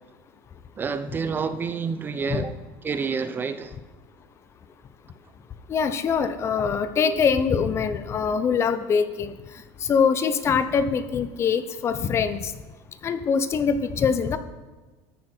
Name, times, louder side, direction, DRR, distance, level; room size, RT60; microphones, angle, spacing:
voice 1, 0.8-3.7 6.2-6.3 6.9-7.2, right 5 dB, 25° right, 11 dB, 0.6 m, -29 dB
voice 2, 5.7-9.3 9.8-12.5 13.0-14.4, left 6 dB, 30° left, 11 dB, 0.7 m, -23 dB
14.0 x 8.7 x 4.5 m, 1.2 s
supercardioid pair, 130°, 9 cm